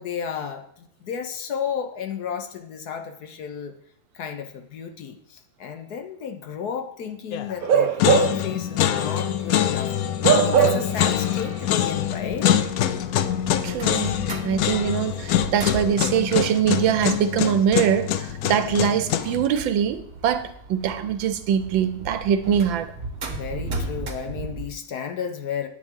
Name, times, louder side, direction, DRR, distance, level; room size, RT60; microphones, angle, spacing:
voice 1, 0.0-3.8 4.1-9.9 10.3-12.5 23.3-25.7, left 7 dB, 65° left, 1.2 m, -33 dB
sound 1, 7.3-7.7 8.0-19.5, left 10 dB, 80° left, 0.8 m, -24 dB
Bark / Livestock farm animals working animals, 7.6-8.5 8.9-9.1 10.2-11.1 11.4-11.5, right 7 dB, 65° right, 0.9 m, -20 dB
sound 2, 10.9-24.7, right 2 dB, 40° right, 1.0 m, -38 dB
voice 2, 13.6-14.2 14.4-22.9, right 9 dB, 85° right, 1.5 m, -23 dB
9.8 x 8.7 x 3.7 m
omnidirectional pair, 2.1 m